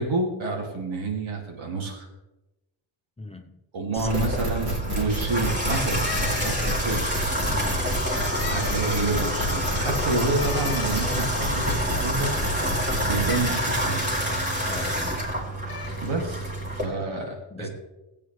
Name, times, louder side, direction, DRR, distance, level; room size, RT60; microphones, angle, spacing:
voice 1, 0.0-2.1 3.7-7.0 8.5-12.3 13.0-14.1 16.0-16.5 16.8-17.7, right 3 dB, 75° right, 2.5 m, -28 dB
voice 2, 3.2-3.6 3.9-4.1 7.5-7.9 14.7-15.3 17.0-17.1 17.5-17.7, left 2 dB, 15° left, 0.7 m, -40 dB
Water tap faucet / Bathtub (filling or washing), 4.0-16.8, equal, 20° right, 2.9 m, -27 dB
sound 1, 4.0-13.5, equal, 45° right, 3.0 m, -31 dB
sound 2, 5.7-7.3 7.9-9.3 10.4-11.4 13.2-13.7 15.7-16.1, left 7 dB, 45° left, 1.1 m, -38 dB
16.5 x 8.5 x 3.2 m
cardioid pair, 105°, 47 cm